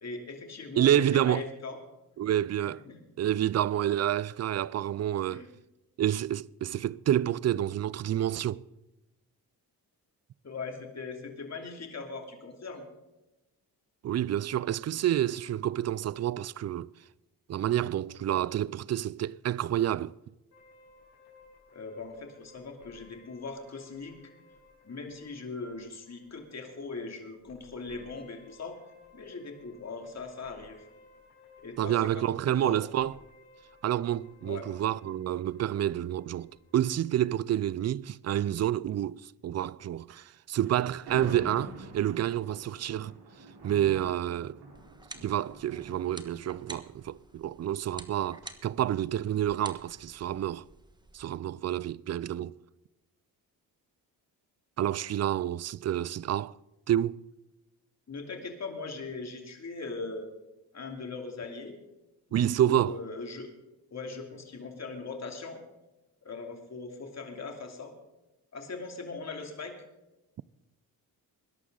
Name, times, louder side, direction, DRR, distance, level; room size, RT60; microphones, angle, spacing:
voice 1, 0.0-1.8 2.6-3.0 5.3-5.5 10.4-12.8 21.7-24.2 24.8-28.8 29.1-30.8 31.6-32.8 34.4-34.6 58.1-60.3 60.7-61.8 62.3-63.5 63.9-65.6 66.2-67.9 68.5-69.7, left 3 dB, 40° left, 2.8 m, -40 dB
voice 2, 0.8-1.4 2.2-2.8 3.2-5.5 6.0-8.6 14.0-16.9 17.5-20.1 31.8-33.1 33.8-43.1 43.6-44.6 45.2-50.6 51.1-52.6 54.8-56.6 56.9-57.2 62.3-63.0, right 11 dB, 40° right, 0.4 m, -28 dB
sound 1, 20.5-37.6, left 2 dB, 65° left, 5.2 m, -59 dB
Thunder, 40.6-47.8, right 2 dB, 70° right, 4.6 m, -46 dB
sound 2, 44.7-51.3, right 2 dB, 10° right, 1.3 m, -50 dB
20.5 x 11.0 x 3.9 m
cardioid pair, 80°, 40 cm